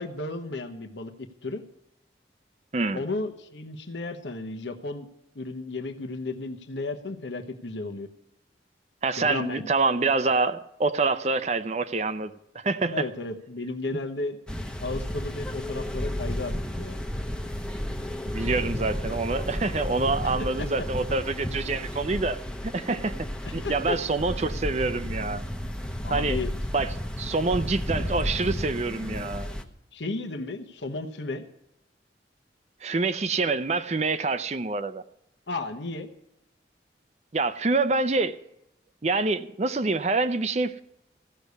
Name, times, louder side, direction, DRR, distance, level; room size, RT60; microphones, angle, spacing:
voice 1, 0.0-1.6 2.9-5.1 5.3-8.1 9.2-9.7 12.9-14.4 14.8-17.0 20.4-20.9 23.5-24.0 26.0-26.5 29.9-31.5 35.5-36.1, left 2 dB, 85° left, 1.1 m, -34 dB
voice 2, 9.0-13.1 18.2-22.4 22.6-23.2 23.5-25.4 26.1-26.4 26.7-29.5 32.8-35.0 37.3-38.4 39.0-40.8, right 3 dB, 40° right, 0.5 m, -26 dB
sound 1, 14.5-29.6, equal, 5° left, 0.8 m, -32 dB
15.5 x 6.7 x 8.2 m
head